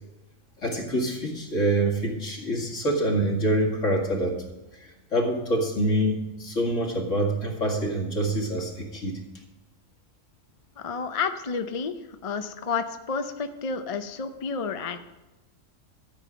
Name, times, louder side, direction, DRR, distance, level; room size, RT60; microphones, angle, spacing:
voice 1, 0.6-4.3 4.8-9.2, right 1 dB, 65° left, 0 dB, 2.4 m, -26 dB
voice 2, 10.8-15.0, left 5 dB, 40° left, 8 dB, 0.5 m, -30 dB
13.5 x 7.5 x 5.1 m, 1.1 s
omnidirectional pair, 1.4 m